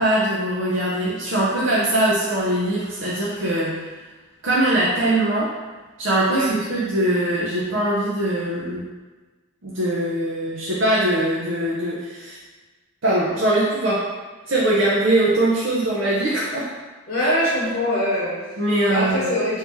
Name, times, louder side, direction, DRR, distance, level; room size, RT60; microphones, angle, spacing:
voice 1, 0.0-3.8 4.4-5.5 6.0-8.8 9.6-12.4 13.0-14.1 14.5-16.7 17.2-17.3 18.6-19.3, right 1 dB, 65° right, -7 dB, 0.6 m, -21 dB
voice 2, 17.1-18.4 18.9-19.6, equal, 55° left, -9 dB, 1.0 m, -23 dB
3.0 x 2.8 x 3.5 m, 1.3 s
head